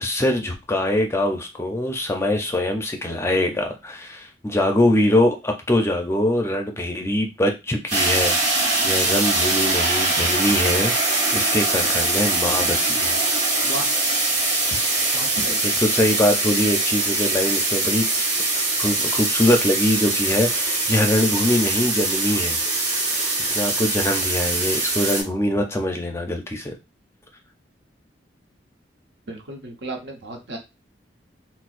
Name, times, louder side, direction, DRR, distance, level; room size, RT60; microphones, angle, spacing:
voice 1, 0.0-13.2 15.6-18.1 18.8-23.0 23.4-26.7, left 1 dB, 15° left, 3 dB, 0.5 m, -23 dB
sound 1, 7.9-25.2, right 2 dB, 40° right, 1.1 m, -22 dB
sound 2, 11.7-12.3 14.5-15.0 18.1-19.7 22.7-24.2, right 1 dB, 15° right, 0.8 m, -37 dB
voice 2, 15.1-15.6 29.3-30.6, right 2 dB, 70° right, 2 dB, 0.9 m, -34 dB
4.3 x 2.0 x 2.5 m, 0.25 s
head